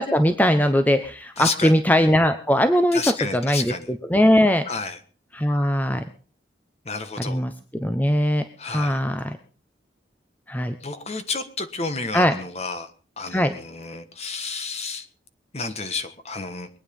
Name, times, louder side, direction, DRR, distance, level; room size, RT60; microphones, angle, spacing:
voice 1, 0.0-4.6 5.3-6.0 7.2-9.4 10.5-10.7 12.1-12.3 13.3-13.5, equal, 10° left, 8 dB, 0.8 m, -20 dB
voice 2, 1.4-1.7 2.9-3.9 4.7-5.0 6.8-7.4 8.6-9.0 10.8-12.9 13.2-15.1 15.5-16.7, left 4 dB, 35° left, 9 dB, 1.5 m, -31 dB
22.5 x 9.5 x 5.3 m, 0.41 s
head